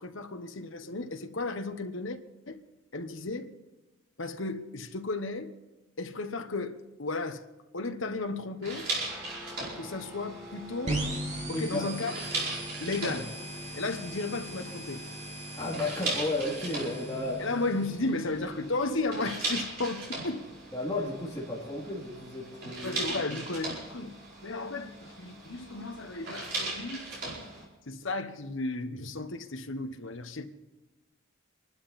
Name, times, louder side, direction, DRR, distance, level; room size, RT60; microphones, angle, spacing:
voice 1, 0.0-2.2 2.5-2.6 2.9-3.5 4.2-5.5 6.0-7.4 7.7-8.9 9.8-11.0 11.5-12.2 12.8-13.3 13.7-15.0 17.4-20.4 22.8-24.1 24.4-27.0 27.9-30.5, left 3 dB, 70° left, 1.2 m, -34 dB
sound 1, 8.6-27.6, right 2 dB, 50° right, 5.0 m, -39 dB
Guitar, 9.1-20.5, left 1 dB, 10° right, 2.1 m, -51 dB
sound 2, 10.9-18.5, right 1 dB, 35° right, 2.8 m, -39 dB
voice 2, 11.4-11.9 15.6-17.5 20.7-23.2, left 2 dB, 15° left, 2.7 m, -33 dB
26.0 x 12.0 x 4.2 m
head